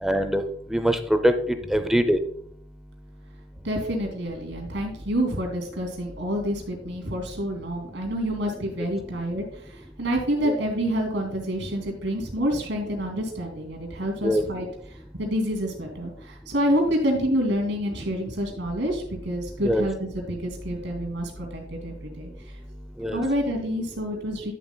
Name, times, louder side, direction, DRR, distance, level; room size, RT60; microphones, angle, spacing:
voice 1, 0.0-0.4 0.7-2.2 10.4-10.5 14.2-14.4 19.6-19.9 23.0-23.2, equal, ahead, 8 dB, 0.5 m, -22 dB
voice 2, 3.6-22.6 23.1-24.5, equal, 80° right, 1 dB, 2.6 m, -28 dB
11.0 x 7.4 x 2.2 m, 0.65 s
head